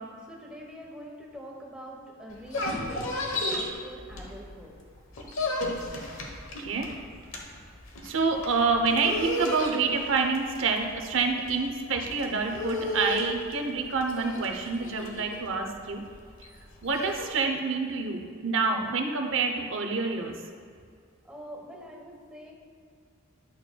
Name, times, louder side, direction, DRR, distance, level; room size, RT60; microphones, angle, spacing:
voice 1, 0.2-4.7 21.3-22.5, equal, 5° right, -3 dB, 1.0 m, -44 dB
sound 1, 2.3-4.7 5.0-17.3, left 1 dB, 85° left, 1.0 m, -34 dB
voice 2, 6.6-6.9 8.0-16.0 16.8-20.3, right 4 dB, 70° right, 4 dB, 0.8 m, -27 dB
11.0 x 6.4 x 2.2 m, 2.2 s
head